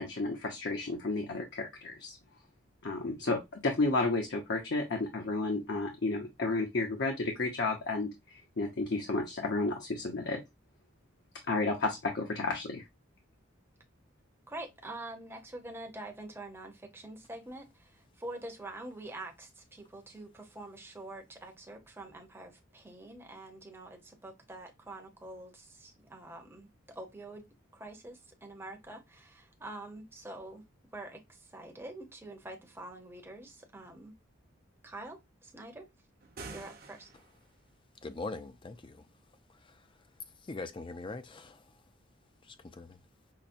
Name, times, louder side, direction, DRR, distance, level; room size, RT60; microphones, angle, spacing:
voice 1, 0.0-2.2 2.8-10.4 11.5-12.8, left 3 dB, 55° left, 0.7 m, -32 dB
voice 2, 14.5-27.5 27.7-30.6 30.9-34.1 34.8-35.9 36.5-37.1, right 2 dB, 10° right, 0.7 m, -46 dB
sound 1, 36.2-37.5, right 3 dB, 45° right, 0.8 m, -47 dB
voice 3, 38.0-38.9 40.5-41.5 42.8-42.9, left 3 dB, 25° left, 0.4 m, -40 dB
5.7 x 2.1 x 2.5 m
head